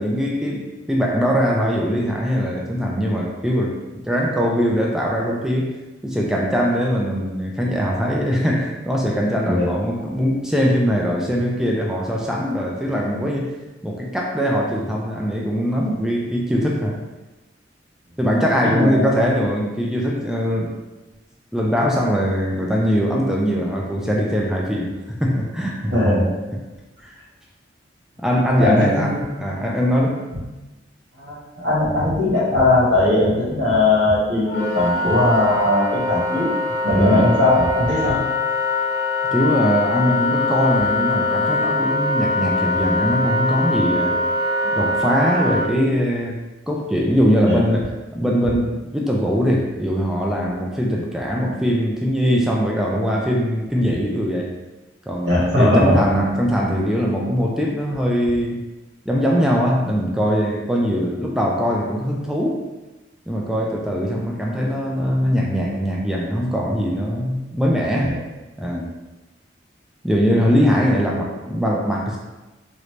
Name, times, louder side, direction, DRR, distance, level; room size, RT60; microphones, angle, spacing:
voice 1, 0.0-5.8 6.0-13.5 13.8-17.0 18.2-20.7 21.5-25.9 27.0-27.2 28.2-30.2 37.0-37.3 39.3-44.2 44.6-54.5 55.1-58.6 59.1-62.6 63.3-68.2 68.6-68.9 70.0-72.2, equal, 5° right, -2 dB, 0.3 m, -21 dB
voice 2, 9.4-10.1 18.6-19.1 25.9-26.3 28.6-29.3 30.3-30.4 31.2-36.5 36.8-38.2 47.5-47.6 55.2-56.0 68.0-68.2, left 1 dB, 75° right, -7 dB, 1.4 m, -19 dB
Wind instrument woodwind instrument, 34.4-45.7, left 2 dB, 60° left, 0.7 m, -22 dB
3.1 x 2.6 x 3.1 m, 1.1 s
head